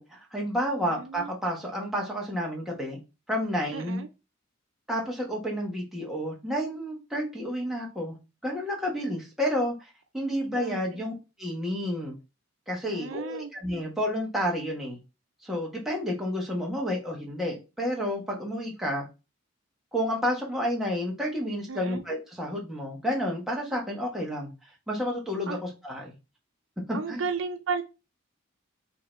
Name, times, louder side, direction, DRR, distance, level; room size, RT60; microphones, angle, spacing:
voice 1, 0.0-3.0 3.3-4.0 4.9-8.2 8.4-11.1 11.4-12.1 12.7-15.0 15.4-19.1 19.9-24.5 24.9-26.1 26.9-27.2, equal, ahead, 1.3 m, -30 dB
voice 2, 0.8-1.3 3.7-4.1 10.6-11.1 12.9-13.5 21.7-22.0 25.5-25.6 26.9-27.8, right 5 dB, 70° right, 0.6 m, -34 dB
5.5 x 2.9 x 3.1 m
head